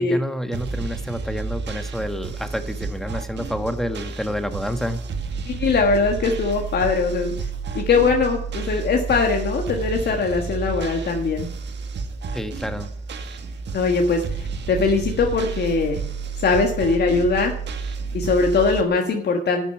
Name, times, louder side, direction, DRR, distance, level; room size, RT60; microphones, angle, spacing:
voice 1, 0.0-5.0 12.3-12.9, equal, ahead, 8 dB, 1.4 m, -28 dB
sound 1, 0.5-18.8, right 5 dB, 60° right, 1.6 m, -31 dB
voice 2, 5.5-7.3 7.7-11.5 13.7-16.0 16.4-17.5 18.1-19.7, left 4 dB, 55° left, 3 dB, 1.6 m, -21 dB
11.5 x 6.8 x 7.2 m, 0.70 s
cardioid pair, 90°, 20 cm